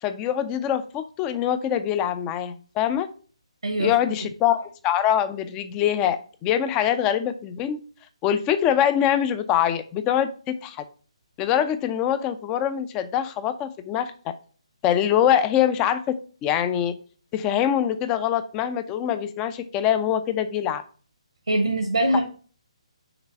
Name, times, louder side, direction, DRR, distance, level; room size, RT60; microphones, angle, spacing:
voice 1, 0.0-3.1 3.8-7.8 8.2-10.8 11.4-14.1 14.8-16.0 16.4-16.9 17.3-20.8, left 10 dB, 15° left, 11 dB, 0.5 m, -24 dB
voice 2, 21.5-22.2, right 1 dB, 70° right, 4 dB, 1.1 m, -22 dB
6.0 x 4.0 x 5.2 m, 0.39 s
figure-of-eight pair, 140°, 3 cm